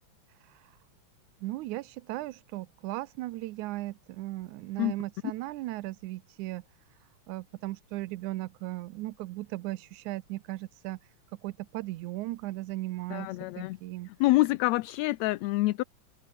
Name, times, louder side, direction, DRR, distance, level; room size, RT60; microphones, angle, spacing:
voice 1, 1.4-6.6 7.3-11.0 11.4-13.3 13.6-14.1, right 18 dB, 90° right, 2.2 m, -37 dB
voice 2, 13.1-13.8 14.2-15.8, left 19 dB, 80° left, 1.8 m, -26 dB
open air
omnidirectional pair, 3.3 m